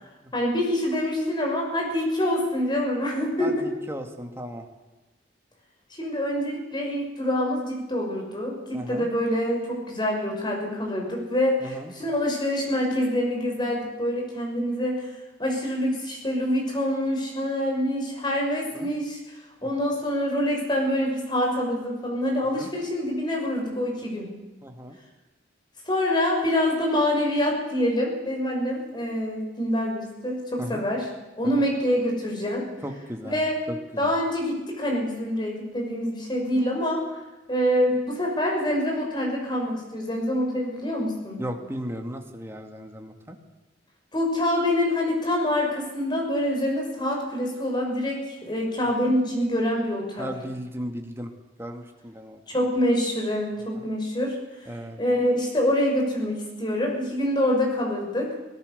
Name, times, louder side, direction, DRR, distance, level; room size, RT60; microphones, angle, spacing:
voice 1, 0.3-3.7 5.9-15.1 15.4-19.4 19.6-24.3 25.9-31.0 31.3-32.6 33.2-33.6 34.0-37.2 37.5-41.4 44.1-50.3 52.5-54.4 55.0-58.3, left 1 dB, 25° left, 0 dB, 6.0 m, -26 dB
voice 2, 3.4-4.7 8.7-9.1 11.6-11.9 18.7-18.9 19.6-19.7 22.6-22.7 24.6-25.0 30.6-30.8 31.6-31.7 32.8-33.4 33.7-34.1 41.4-43.4 50.2-51.3 51.6-52.4 53.8-53.9 54.7-55.0, equal, 15° right, 4 dB, 2.2 m, -36 dB
25.0 x 17.5 x 6.9 m, 1.1 s
head